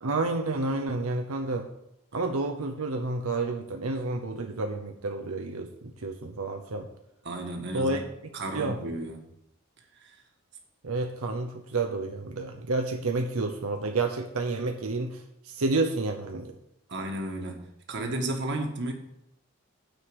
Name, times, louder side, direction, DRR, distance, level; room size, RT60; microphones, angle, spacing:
voice 1, 0.0-1.7 2.1-6.9 7.7-8.0 8.5-8.8 10.8-16.5, right 3 dB, 90° right, 3 dB, 0.8 m, -30 dB
voice 2, 7.2-8.1 8.3-9.3 10.0-10.2 16.9-18.9, right 1 dB, 55° right, 3 dB, 1.6 m, -33 dB
9.3 x 4.9 x 7.6 m, 0.82 s
head